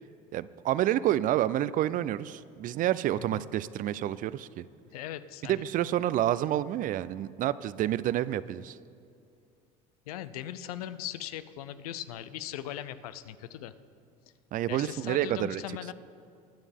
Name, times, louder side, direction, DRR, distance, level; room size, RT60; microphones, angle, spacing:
voice 1, 0.3-4.6 5.5-8.8 14.5-15.6, right 12 dB, 45° right, 18 dB, 0.4 m, -29 dB
voice 2, 4.9-5.6 10.1-13.7 14.7-15.9, left 12 dB, 85° left, 13 dB, 0.5 m, -39 dB
21.0 x 7.2 x 3.5 m, 2.4 s
hypercardioid pair, 80°, 19 cm